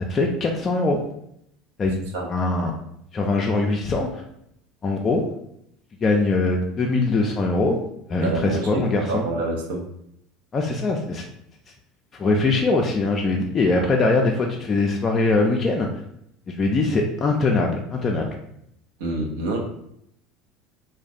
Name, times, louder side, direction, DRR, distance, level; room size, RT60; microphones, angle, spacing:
voice 1, 0.1-1.0 1.8-2.0 2.3-2.7 3.1-4.2 4.8-5.2 6.0-7.8 8.1-9.3 10.5-11.2 12.1-16.0 16.5-18.3, left 3 dB, 30° left, 1 dB, 0.3 m, -22 dB
voice 2, 8.2-9.9 19.0-19.6, right 2 dB, 70° right, 1 dB, 0.5 m, -27 dB
2.3 x 2.1 x 2.5 m, 0.75 s
hypercardioid pair, 75°, 0 cm